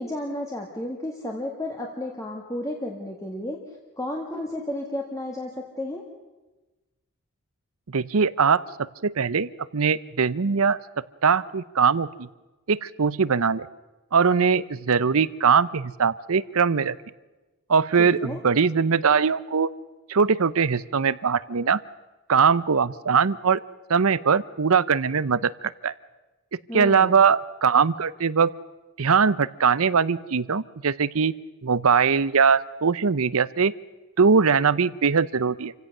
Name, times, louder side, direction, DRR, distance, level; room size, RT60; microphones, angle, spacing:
voice 1, 0.0-3.6 4.0-6.0 18.0-18.4 26.7-27.2, left 1 dB, 15° left, 0 dB, 1.9 m, -32 dB
voice 2, 7.9-8.6 9.0-10.8 11.2-12.3 12.7-13.7 14.1-16.9 17.7-19.7 20.1-21.8 22.3-23.6 23.9-25.5 25.8-25.9 26.7-28.5 29.0-31.3 31.6-33.7 34.2-35.7, right 5 dB, 70° right, 18 dB, 0.7 m, -21 dB
27.5 x 16.5 x 6.7 m, 1.1 s
head